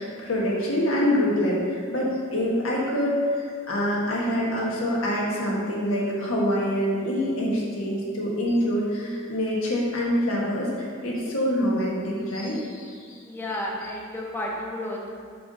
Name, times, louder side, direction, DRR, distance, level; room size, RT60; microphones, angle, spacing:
voice 1, 0.0-13.2, equal, 80° left, -4 dB, 1.5 m, -25 dB
voice 2, 13.2-15.2, left 1 dB, 10° left, -3 dB, 0.9 m, -32 dB
5.4 x 4.8 x 4.9 m, 2.1 s
head